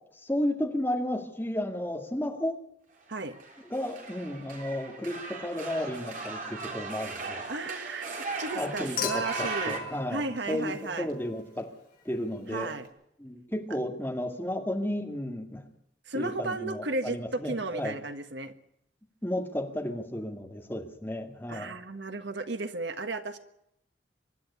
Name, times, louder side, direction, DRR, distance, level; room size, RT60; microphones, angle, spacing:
voice 1, 0.2-2.6 3.7-7.4 8.5-11.7 12.1-12.7 13.2-15.6 16.1-18.0 19.2-21.8, left 1 dB, 10° left, 2 dB, 2.1 m, -33 dB
sound 1, 3.3-9.8, right 4 dB, 45° right, 3.6 m, -38 dB
voice 2, 7.5-9.8 10.1-11.1 12.5-12.9 16.1-18.5 21.5-23.4, right 3 dB, 75° right, 9 dB, 1.4 m, -34 dB
Human group actions / Chink clink / Liquid, 9.0-11.4 12.8-12.9, left 3 dB, 55° left, 5.4 m, -36 dB
24.5 x 11.5 x 9.8 m, 0.78 s
head